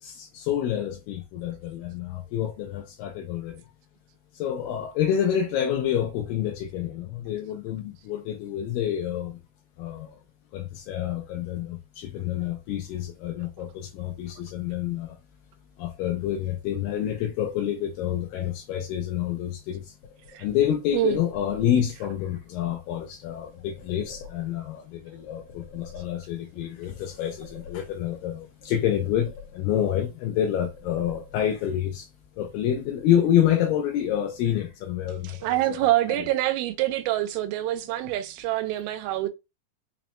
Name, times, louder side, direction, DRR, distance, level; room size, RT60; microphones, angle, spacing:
voice 1, 0.0-3.6 4.3-9.3 9.8-10.2 10.5-15.2 15.8-19.9 20.4-32.1 32.4-36.3, left 10 dB, 80° left, 2.1 m, -28 dB
sound 1, 20.0-22.0 23.5-24.8 25.2-26.5 26.9-28.3 28.6-30.0 30.3-31.7, left 5 dB, 65° left, 2.2 m, -47 dB
voice 2, 35.4-39.3, right 15 dB, 90° right, 2.5 m, -26 dB
5.9 x 2.1 x 3.0 m
omnidirectional pair, 4.2 m